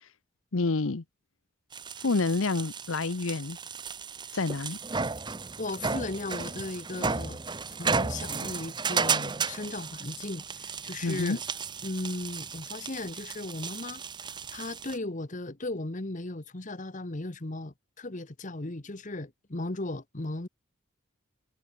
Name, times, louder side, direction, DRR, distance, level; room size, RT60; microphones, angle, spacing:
voice 1, 0.5-1.0 2.0-3.6 4.3-4.8 11.0-11.4, left 3 dB, 70° left, 0.9 m, -28 dB
sound 1, 1.7-15.0, right 5 dB, 20° right, 0.8 m, -34 dB
voice 2, 5.6-7.4 7.7-11.4 11.8-14.0 14.5-20.5, left 2 dB, 35° left, 1.2 m, -36 dB
head